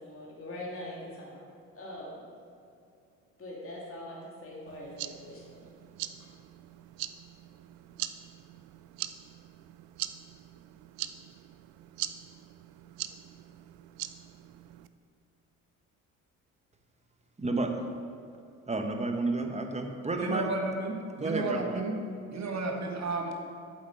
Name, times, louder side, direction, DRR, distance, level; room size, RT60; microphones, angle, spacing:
voice 1, 0.0-1.5 1.7-2.3 3.4-5.7 6.2-6.3, left 1 dB, 35° left, -5 dB, 2.1 m, -43 dB
sound 1, 4.7-14.9, right 14 dB, 60° right, 0.5 m, -42 dB
voice 2, 17.4-17.7 18.7-20.5 21.2-21.8, right 2 dB, 15° right, 4 dB, 1.2 m, -31 dB
voice 3, 20.2-21.9 22.3-23.4, right 3 dB, 40° right, 2 dB, 1.5 m, -32 dB
8.7 x 7.6 x 4.5 m, 2.4 s
hypercardioid pair, 55°, 40 cm